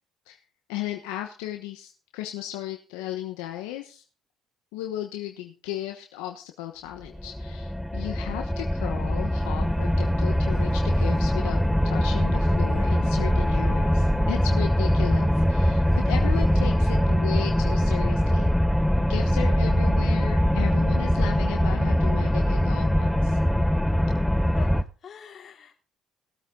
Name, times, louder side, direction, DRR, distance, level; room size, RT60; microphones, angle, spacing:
voice 1, 0.7-4.0 4.7-11.6 11.8-18.5 19.0-23.4, left 13 dB, 85° left, 4 dB, 1.1 m, -35 dB
sound 1, 7.1-24.8, equal, 5° left, 0.8 m, -22 dB
sound 2, 9.3-16.6, right 7 dB, 55° right, 6.2 m, -51 dB
voice 2, 24.5-25.8, left 7 dB, 50° left, 2 dB, 3.2 m, -43 dB
18.0 x 8.3 x 3.8 m, 0.36 s
supercardioid pair, 65°, 0 cm